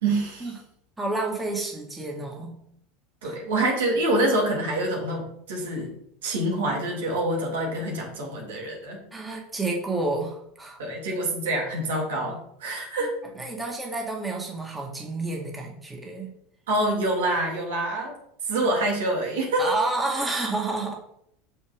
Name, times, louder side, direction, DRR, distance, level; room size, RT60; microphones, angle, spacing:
voice 1, 0.0-0.5 3.2-5.9 6.2-9.0 10.8-13.1 16.7-18.1 18.5-19.7, right 1 dB, 80° right, 0 dB, 2.8 m, -26 dB
voice 2, 1.0-2.5 3.2-3.4 9.1-10.8 13.0-13.1 13.4-16.3 19.6-20.9, right 2 dB, 10° right, -1 dB, 1.9 m, -30 dB
6.5 x 5.4 x 5.2 m, 0.72 s
hypercardioid pair, 90°, 0 cm